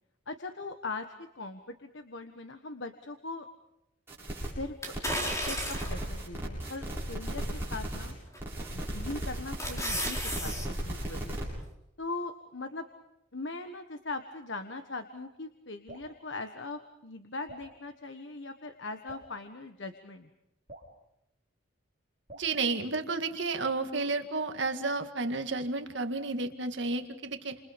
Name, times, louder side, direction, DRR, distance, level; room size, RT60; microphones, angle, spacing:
voice 1, 0.3-1.1 1.3-3.5 4.6-4.8 5.2-8.1 8.7-11.3 12.0-12.8 13.3-20.3, left 3 dB, 60° left, 7 dB, 1.4 m, -40 dB
sound 1, 4.1-4.5 4.8-8.1 8.4-11.4, right 1 dB, 10° right, 7.8 m, -36 dB
sound 2, 4.8-6.1 6.7-6.8 8.3-8.7 9.1-10.7 11.0-11.1, equal, 15° left, 4.6 m, -33 dB
Drip, 15.9-16.1 17.5-17.7 19.1-19.3 20.7-20.9 22.3-22.5, right 1 dB, 40° right, 5.0 m, -48 dB
voice 2, 22.3-27.6, right 3 dB, 60° right, 6 dB, 2.0 m, -31 dB
29.5 x 28.0 x 5.2 m, 0.84 s
head